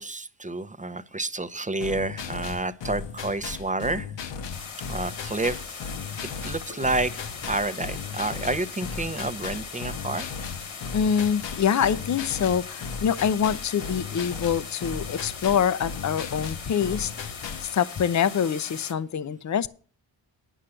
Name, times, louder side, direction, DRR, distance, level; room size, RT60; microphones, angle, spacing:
voice 1, 0.0-4.1 4.8-5.9 6.4-10.3, right 2 dB, 15° right, 0.7 m, -29 dB
sound 1, 1.8-17.7, left 5 dB, 65° left, 1.0 m, -36 dB
sound 2, 4.5-18.9, left 6 dB, 80° left, 1.9 m, -40 dB
voice 2, 10.9-17.1 17.6-19.7, left 8 dB, 40° left, 0.6 m, -25 dB
10.0 x 5.7 x 7.6 m
cardioid pair, 65°, 47 cm